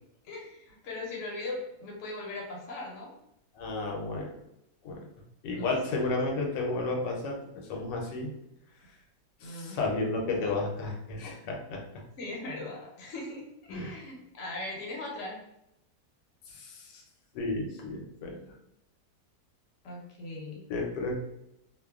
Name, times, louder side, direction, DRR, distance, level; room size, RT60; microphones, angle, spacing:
voice 1, 0.2-3.1 5.5-5.7 9.4-9.8 10.4-10.5 12.2-15.4 19.8-20.6, left 2 dB, 55° left, -2 dB, 0.9 m, -39 dB
voice 2, 3.5-4.3 4.8-5.0 5.4-7.4 7.7-8.3 9.4-12.0 13.7-13.9 16.5-17.0 17.3-18.4 20.7-21.1, left 3 dB, 85° left, 0 dB, 1.2 m, -32 dB
2.9 x 2.1 x 2.3 m, 0.81 s
omnidirectional pair, 1.8 m